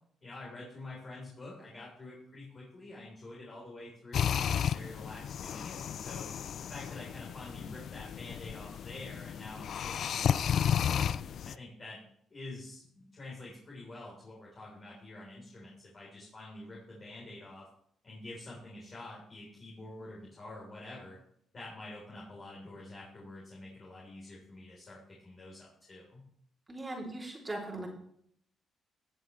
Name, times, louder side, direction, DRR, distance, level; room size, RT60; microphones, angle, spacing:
voice 1, 0.2-6.3 6.6-11.1 11.4-12.0 12.3-17.7 18.0-21.2 21.5-26.2, left 2 dB, 40° left, -4 dB, 3.7 m, -47 dB
sound 1, 4.1-11.6, left 8 dB, 65° left, 0.3 m, -33 dB
voice 2, 26.7-27.9, right 2 dB, 20° right, -2 dB, 3.0 m, -39 dB
16.5 x 7.7 x 3.2 m, 0.68 s
cardioid pair, 90°, 0 cm